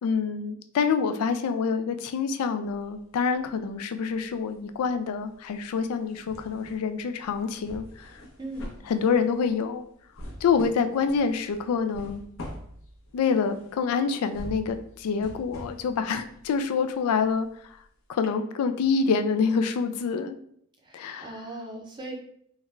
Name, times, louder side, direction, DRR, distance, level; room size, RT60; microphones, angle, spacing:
voice 1, 0.0-8.1 8.9-9.8 10.4-12.2 13.1-17.5 18.1-20.4 20.9-21.3, left 5 dB, 90° left, 9 dB, 0.3 m, -26 dB
sound 1, 2.6-3.8 4.1-17.8 18.2-18.3, equal, 65° left, 0.7 m, -45 dB
voice 2, 8.4-8.7 20.8-22.1, right 2 dB, 20° right, 0 dB, 0.5 m, -38 dB
3.5 x 2.2 x 3.1 m, 0.67 s
head